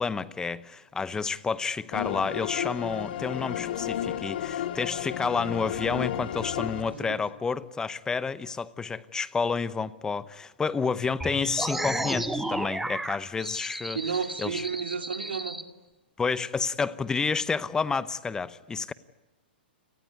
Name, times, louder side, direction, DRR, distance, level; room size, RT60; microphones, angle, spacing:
voice 1, 0.0-14.0 14.4-14.7 16.2-18.9, left 5 dB, 10° left, 0.9 m, -30 dB
sound 1, 1.9-7.0, left 10 dB, 60° left, 2.3 m, -32 dB
voice 2, 6.9-7.2 13.9-15.6, right 6 dB, 85° right, 3.0 m, -32 dB
sound 2, 11.2-15.6, right 1 dB, 5° right, 1.9 m, -33 dB
29.5 x 19.0 x 9.6 m
hypercardioid pair, 130°, 6 cm